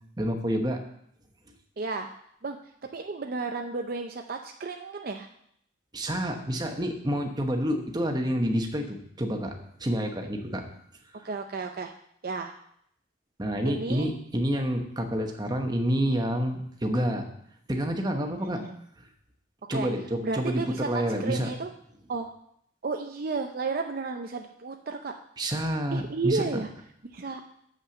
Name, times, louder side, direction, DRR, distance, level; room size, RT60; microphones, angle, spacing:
voice 1, 0.2-0.8 5.9-10.6 13.4-17.2 17.7-18.6 19.7-21.5 25.4-26.4, equal, 20° right, 4 dB, 1.0 m, -28 dB
voice 2, 1.8-2.1 2.4-5.3 11.2-11.9 12.2-12.5 13.6-14.1 18.4-18.8 19.7-19.9 20.2-21.7 22.1-22.3 22.8-25.2 25.9-26.7 27.1-27.4, right 4 dB, 50° right, 4 dB, 0.5 m, -32 dB
7.5 x 5.7 x 7.0 m, 0.70 s
head